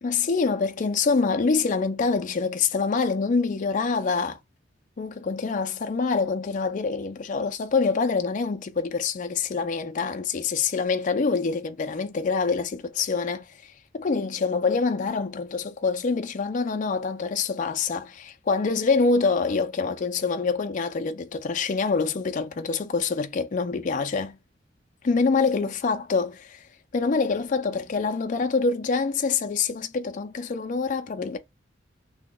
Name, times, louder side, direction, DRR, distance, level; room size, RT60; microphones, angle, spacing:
voice 1, 0.0-4.4 5.0-24.4 25.0-26.6 26.9-31.4, left 4 dB, 45° left, 0.4 m, -25 dB
2.8 x 2.2 x 3.7 m
head